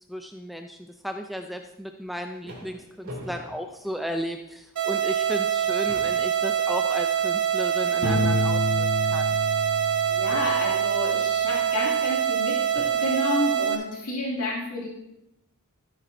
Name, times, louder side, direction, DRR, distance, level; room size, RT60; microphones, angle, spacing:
voice 1, 0.1-9.4, equal, ahead, 4 dB, 0.4 m, -34 dB
sound 1, 1.9-4.6 5.0-5.2 5.5-9.0 10.3-11.0 11.9-12.0 12.7-13.2, equal, 60° right, 2.8 m, -45 dB
sound 2, 4.8-13.8, right 9 dB, 85° right, 2.0 m, -25 dB
Piano, 8.0-10.8, left 2 dB, 55° left, 3.7 m, -28 dB
voice 2, 10.1-14.9, left 1 dB, 70° left, -4 dB, 2.5 m, -30 dB
13.5 x 9.4 x 2.7 m, 0.85 s
head